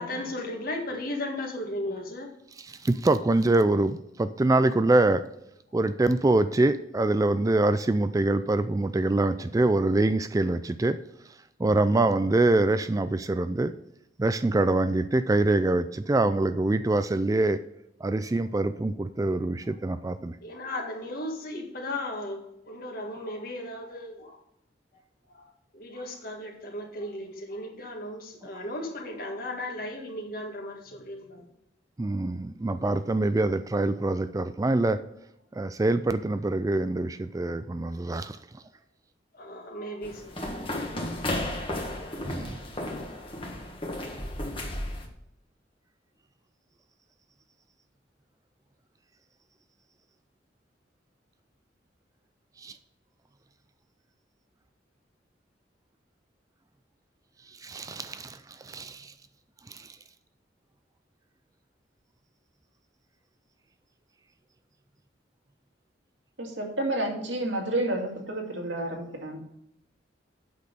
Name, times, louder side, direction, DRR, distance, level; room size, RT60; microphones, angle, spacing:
voice 1, 0.0-2.3 20.4-24.4 25.3-25.5 25.7-31.5 38.2-38.3 39.3-40.3, left 1 dB, 50° left, 1 dB, 1.8 m, -36 dB
voice 2, 2.6-5.2 5.7-11.0 11.6-13.7 14.2-17.6 18.0-20.4 32.0-35.0 35.5-38.6 42.3-42.6 52.6-52.8 57.5-59.1 59.7-60.0, right 2 dB, 20° right, 11 dB, 0.3 m, -25 dB
sound 1, 40.0-45.1, left 1 dB, 30° left, 1.5 m, -34 dB
voice 3, 66.4-69.4, right 1 dB, 85° right, 1 dB, 2.3 m, -30 dB
8.4 x 6.2 x 5.2 m, 0.80 s
head